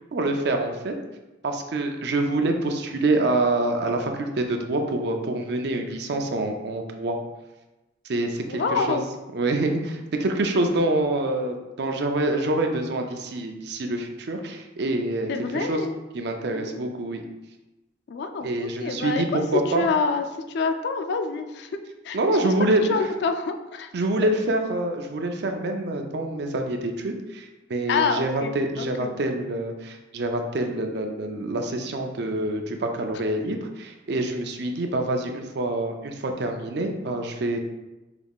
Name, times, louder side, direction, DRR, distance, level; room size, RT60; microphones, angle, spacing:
voice 1, 0.1-0.9 1.4-7.2 8.1-9.0 9.3-15.8 16.1-17.2 18.4-19.9 22.1-23.1 23.9-37.6, right 2 dB, 60° right, 4 dB, 0.4 m, -26 dB
voice 2, 8.5-9.0 15.3-16.0 16.5-16.8 18.1-18.5 18.8-19.2 19.5-21.7 22.0-22.4 22.9-23.9 27.9-29.1, left 4 dB, 60° left, 7 dB, 0.3 m, -27 dB
4.8 x 3.5 x 2.3 m, 1.1 s
head